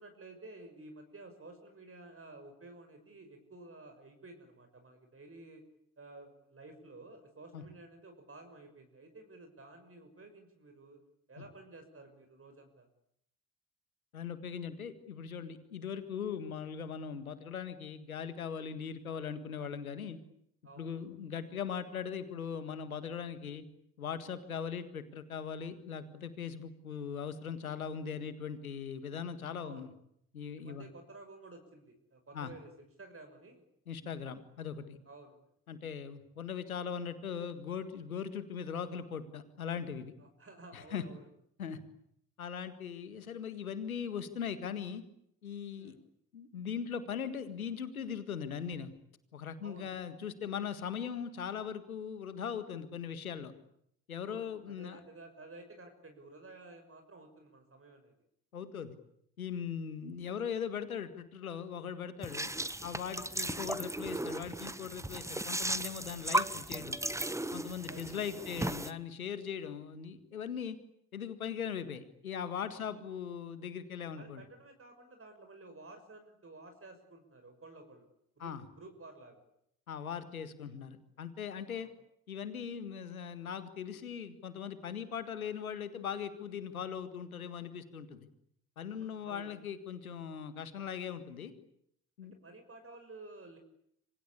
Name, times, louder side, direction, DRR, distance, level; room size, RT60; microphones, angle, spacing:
voice 1, 0.0-5.6 6.0-11.0 11.3-12.9 20.6-20.9 29.6-29.9 30.5-33.6 35.1-35.4 40.2-41.3 45.8-46.0 49.6-50.0 54.2-58.1 67.6-68.6 72.7-73.0 74.1-78.1 78.4-79.4 81.7-81.9 88.9-89.5 92.2-93.6, right 2 dB, 30° right, 5 dB, 6.1 m, -53 dB
voice 2, 14.1-20.2 20.8-23.6 24.0-29.9 30.3-30.9 32.3-32.5 33.9-35.0 35.7-40.1 40.7-41.0 41.6-41.8 42.4-45.0 45.4-45.9 46.3-48.9 49.3-53.5 54.1-55.0 58.5-59.0 59.4-62.5 62.8-67.0 67.5-70.8 71.1-74.4 78.4-78.6 79.9-81.9 82.3-88.3 88.8-91.5 92.2-92.4, left 7 dB, 90° left, 12 dB, 1.9 m, -40 dB
sound 1, 62.2-68.9, right 1 dB, 5° right, 1.5 m, -36 dB
27.0 x 25.5 x 8.5 m, 0.72 s
figure-of-eight pair, 45°, 41 cm